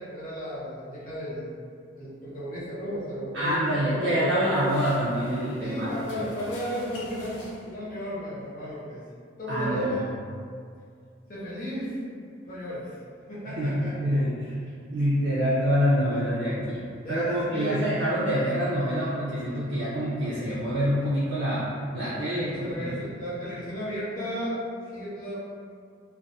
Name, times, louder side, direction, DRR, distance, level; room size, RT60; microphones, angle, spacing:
voice 1, 0.0-1.5 2.0-4.2 5.6-9.0 9.4-10.1 11.3-12.0 12.4-12.9 13.3-14.0 17.0-17.9 22.0-24.6 24.9-25.4, equal, 45° left, -9 dB, 0.8 m, -34 dB
voice 2, 3.3-5.9 9.5-9.9 13.5-14.5 14.9-16.8 17.1-21.7 21.9-23.0, equal, 90° right, -9 dB, 0.5 m, -26 dB
sound 1, 4.1-8.0, left 2 dB, 65° left, 0.4 m, -42 dB
2.3 x 2.2 x 2.6 m, 2.2 s
head